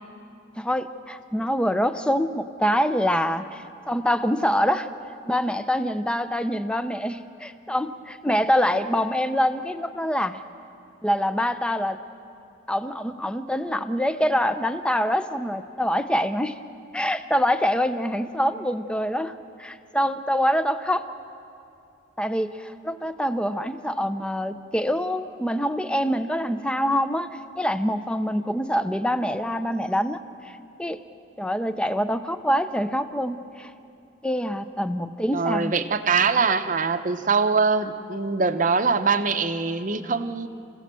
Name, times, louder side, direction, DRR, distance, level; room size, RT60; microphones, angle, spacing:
voice 1, 0.6-4.9 5.3-10.4 11.0-12.0 12.7-16.6 16.9-19.3 19.6-21.1 22.2-27.3 27.6-31.0 31.4-33.7 34.2-35.7, equal, 5° left, 10 dB, 0.6 m, -25 dB
voice 2, 35.3-40.5, right 4 dB, 40° right, 9 dB, 0.8 m, -23 dB
29.0 x 16.0 x 7.6 m, 2.7 s
head